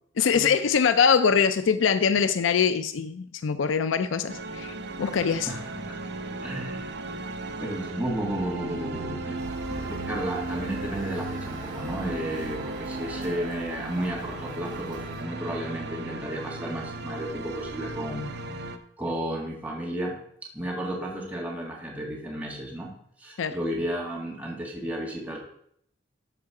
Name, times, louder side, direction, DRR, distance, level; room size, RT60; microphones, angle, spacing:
voice 1, 0.2-5.5 23.4-23.6, left 6 dB, 85° left, 11 dB, 0.4 m, -23 dB
sound 1, 4.3-18.8, right 2 dB, 60° right, 0.8 m, -36 dB
voice 2, 5.5-6.0 6.4-6.8 7.6-9.4 9.7-18.3 19.0-20.2 20.5-22.9 23.2-25.4, right 1 dB, 10° right, -3 dB, 1.9 m, -33 dB
Motor vehicle (road) / Siren, 9.3-15.2, right 1 dB, 25° right, 4.4 m, -43 dB
12.5 x 4.7 x 4.8 m, 0.68 s
head